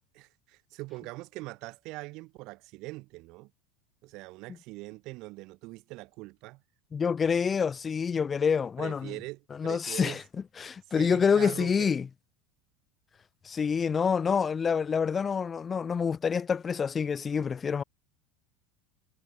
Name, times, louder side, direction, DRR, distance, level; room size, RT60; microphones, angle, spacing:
voice 1, 0.1-3.5 4.0-6.6 8.8-10.2 10.9-11.9, right 22 dB, 40° right, 4.1 m, -42 dB
voice 2, 6.9-9.1 9.5-10.2 10.6-12.1 13.4-17.8, left 6 dB, 15° left, 0.7 m, -27 dB
supercardioid pair, 180°, 0 cm